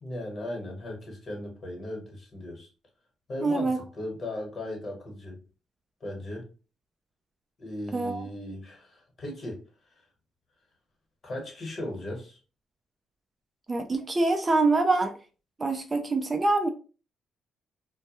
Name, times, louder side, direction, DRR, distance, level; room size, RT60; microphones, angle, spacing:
voice 1, 0.0-2.7 3.3-5.4 6.0-6.5 7.6-10.0 11.2-12.4, left 1 dB, 45° left, 1 dB, 1.1 m, -37 dB
voice 2, 3.4-3.8 7.9-8.3 13.7-15.1 15.6-16.7, right 3 dB, 25° right, 6 dB, 0.4 m, -25 dB
2.2 x 2.2 x 2.8 m, 0.34 s
cardioid pair, 90°, 0 cm